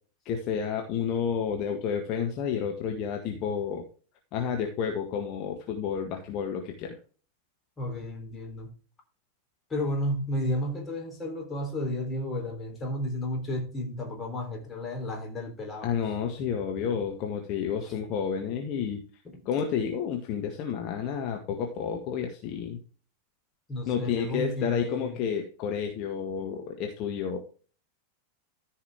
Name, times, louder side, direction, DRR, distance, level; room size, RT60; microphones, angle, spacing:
voice 1, 0.2-3.8 4.3-6.9 15.8-19.0 19.4-22.8 23.9-27.4, left 7 dB, 40° left, 1.6 m, -30 dB
voice 2, 7.8-8.7 9.7-15.9 19.3-19.4 23.7-25.2, left 1 dB, 15° left, 3.8 m, -32 dB
14.0 x 5.6 x 3.6 m
figure-of-eight pair, 90°, 0 cm